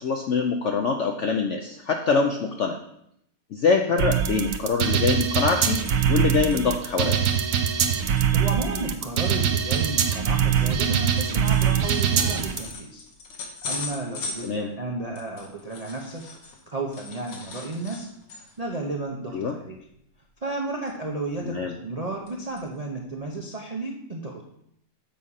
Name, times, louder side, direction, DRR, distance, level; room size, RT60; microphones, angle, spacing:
voice 1, 0.0-2.8 3.5-7.2 14.4-14.7 19.3-19.6 21.4-21.7, left 5 dB, 70° left, 3 dB, 0.7 m, -24 dB
sound 1, 4.0-12.6, right 8 dB, 60° right, 1.0 m, -23 dB
sound 2, 5.9-6.2 6.5-6.6 7.0-7.3 7.8-7.9 8.2-16.6 16.9-18.7 19.1-19.3 19.6-19.8 20.9-21.4 21.8-22.3 22.6-22.7 23.3-23.4, left 4 dB, 85° left, 1.8 m, -40 dB
voice 2, 8.3-13.0 13.7-19.8 20.4-24.4, right 2 dB, 45° right, 0 dB, 0.5 m, -33 dB
7.3 x 4.8 x 5.5 m, 0.73 s
omnidirectional pair, 1.9 m